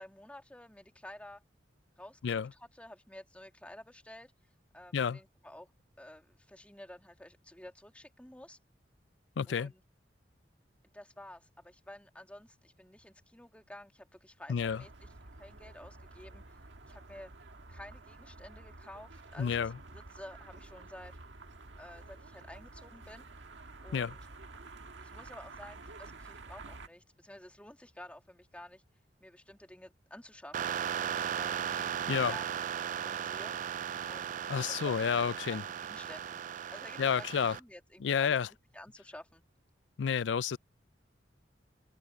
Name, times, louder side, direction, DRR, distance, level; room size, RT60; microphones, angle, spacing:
voice 1, 0.0-1.4 2.0-4.3 4.7-5.7 6.0-8.6 9.5-9.8 10.8-15.1 15.4-16.6 16.8-17.3 17.7-21.2 21.8-23.2 23.8-24.2 25.0-28.8 29.2-30.7 31.4-32.5 32.9-33.6 34.1-36.4 36.7-38.4 38.7-39.4, left 1 dB, 5° left, 2.6 m, -51 dB
voice 2, 9.4-9.7 14.5-14.8 19.4-19.8 23.9-24.2 32.1-32.4 34.5-35.6 37.0-37.6 38.0-38.5 40.0-40.6, left 7 dB, 85° left, 0.4 m, -30 dB
sound 1, 14.5-26.9, right 3 dB, 85° right, 1.7 m, -50 dB
sound 2, 30.5-37.6, right 8 dB, 45° right, 0.3 m, -36 dB
open air
head